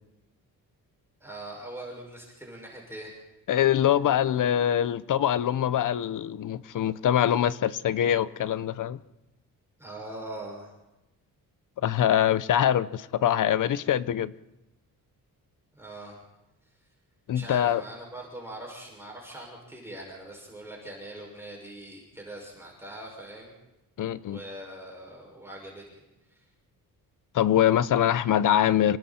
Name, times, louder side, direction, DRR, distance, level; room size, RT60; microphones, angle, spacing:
voice 1, 1.2-3.2 9.8-10.7 15.8-16.2 17.3-23.5 24.2-26.0 26.3-26.4, right 1 dB, 5° right, 6.2 m, -42 dB
voice 2, 3.5-9.0 11.8-14.3 17.3-17.8 24.0-24.4 27.3-29.0, left 10 dB, 60° left, 0.7 m, -24 dB
26.5 x 23.5 x 4.4 m
cardioid pair, 125°, 35 cm